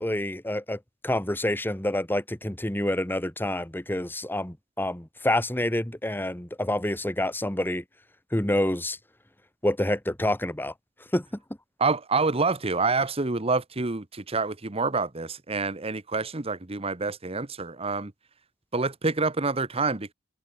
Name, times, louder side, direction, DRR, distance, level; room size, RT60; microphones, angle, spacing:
voice 1, 0.0-7.8 8.3-9.0 9.6-10.7 11.1-11.3, left 1 dB, 10° left, 1.7 m, -27 dB
voice 2, 11.8-18.1 18.7-20.1, right 3 dB, 30° right, 1.2 m, -27 dB
head